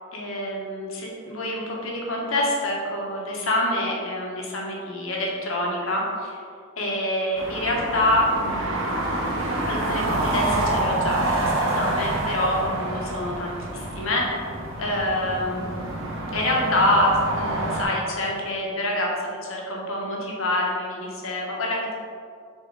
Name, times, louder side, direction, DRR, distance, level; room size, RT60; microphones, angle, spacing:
voice 1, 0.1-6.4 6.8-8.9 9.7-14.4 14.8-21.9, left 1 dB, 80° left, -2 dB, 1.4 m, -26 dB
sound 1, 7.3-17.8, right 1 dB, 70° right, 1.0 m, -27 dB
6.6 x 4.2 x 4.0 m, 2.3 s
head